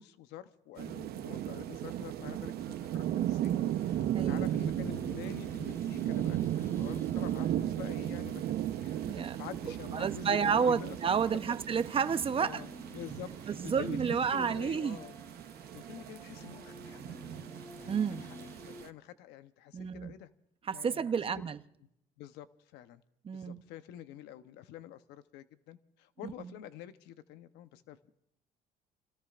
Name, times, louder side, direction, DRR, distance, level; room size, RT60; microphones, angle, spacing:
voice 1, 0.0-8.4 8.8-11.0 11.3-11.6 12.4-12.7 12.9-15.2 15.6-17.0 17.8-18.0 18.6-20.3 20.7-21.1 22.2-22.5 22.7-23.0 23.3-28.1, left 11 dB, 90° left, 0.9 m, -47 dB
sound 1, 0.8-18.9, right 12 dB, 70° right, 0.8 m, -36 dB
sound 2, 1.9-18.8, left 2 dB, 15° left, 1.1 m, -52 dB
voice 2, 4.1-4.5 9.0-9.4 9.9-12.6 13.5-15.0 17.9-18.2 19.7-20.1 20.6-21.6 23.2-23.6 26.2-26.5, right 6 dB, 35° right, 0.8 m, -31 dB
29.5 x 18.0 x 2.5 m
cardioid pair, 110°, 17 cm